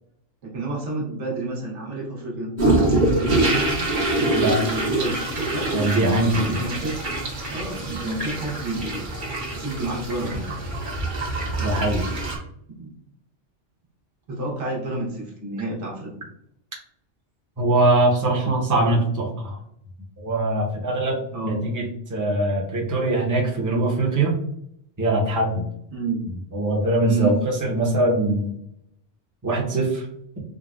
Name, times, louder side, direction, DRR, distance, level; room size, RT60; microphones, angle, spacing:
voice 1, 0.5-3.9 4.4-5.7 6.4-7.0 7.5-9.1 9.5-10.5 12.8-12.9 14.3-16.3 21.3-21.6 25.9-26.2 27.0-27.4, right 3 dB, 75° right, -3 dB, 1.3 m, -29 dB
sound 1, 2.6-12.4, right 1 dB, 45° right, 0.9 m, -25 dB
voice 2, 5.7-6.6 11.6-12.1 17.6-19.6 20.2-24.3 25.0-25.7 26.5-28.5 29.4-30.1, right 2 dB, 20° right, -3 dB, 0.6 m, -22 dB
3.8 x 2.1 x 2.4 m, 0.74 s
omnidirectional pair, 1.2 m